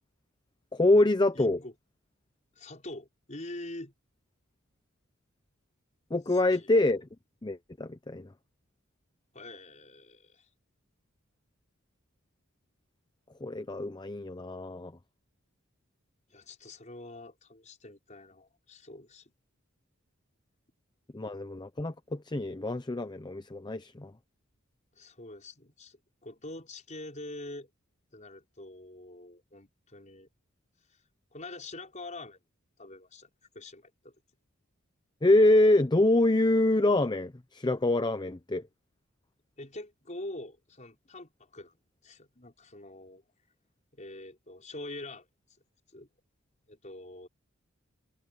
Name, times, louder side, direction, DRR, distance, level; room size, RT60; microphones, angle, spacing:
voice 1, 0.7-1.6 6.1-7.1 7.4-8.3 13.4-14.9 21.1-24.1 35.2-38.6, left 2 dB, 20° left, 0.7 m, -25 dB
voice 2, 1.3-1.7 2.6-3.9 6.3-6.7 9.3-10.5 16.3-19.3 24.9-27.7 28.1-30.3 31.3-32.4 32.8-33.3 33.5-34.1 39.6-41.7 42.0-43.2 43.9-45.3 45.9-46.1 46.7-47.3, left 2 dB, 35° left, 5.5 m, -45 dB
head